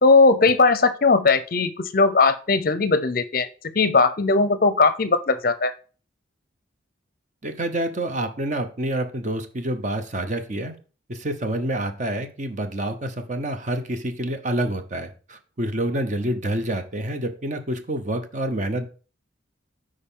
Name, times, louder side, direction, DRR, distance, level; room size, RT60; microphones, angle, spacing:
voice 1, 0.0-3.5 3.8-5.7, left 3 dB, 45° left, 13 dB, 0.5 m, -18 dB
voice 2, 7.4-10.8 11.1-18.9, right 1 dB, 40° right, 8 dB, 0.8 m, -27 dB
8.6 x 5.0 x 3.7 m, 0.37 s
head